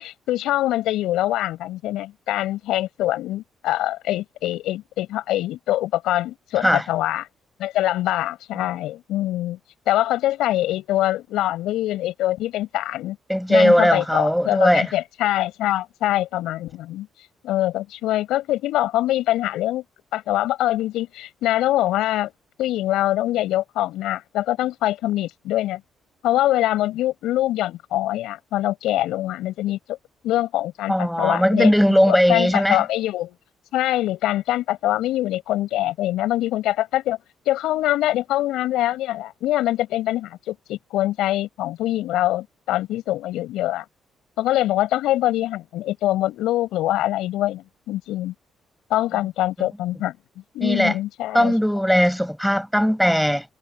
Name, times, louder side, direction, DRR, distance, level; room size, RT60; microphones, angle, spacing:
voice 1, 0.0-7.3 7.6-9.6 9.8-13.2 13.5-17.1 17.4-19.8 20.1-22.3 22.6-25.8 26.2-30.0 30.2-33.4 33.7-37.2 37.4-43.8 44.4-48.3 48.9-50.2 50.5-51.5, left 14 dB, 90° left, 6.9 m, -24 dB
voice 2, 13.3-14.9 30.9-32.8 49.6-49.7 50.6-50.9 51.3-53.4, equal, ahead, 6.1 m, -18 dB
cardioid pair, 90°, 0 cm